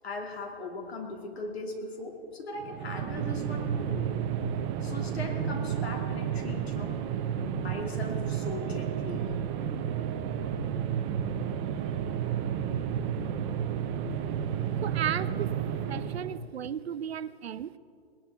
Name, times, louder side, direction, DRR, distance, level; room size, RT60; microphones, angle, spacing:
voice 1, 0.0-4.1 4.8-7.0 7.3-9.3, left 2 dB, 75° left, 1 dB, 3.0 m, -39 dB
sound 1, 2.6-16.4, right 8 dB, 30° right, 0.8 m, -31 dB
voice 2, 14.8-15.6 15.9-17.8, right 9 dB, 80° right, 16 dB, 0.6 m, -34 dB
20.0 x 12.5 x 3.7 m, 2.4 s
hypercardioid pair, 135°, 31 cm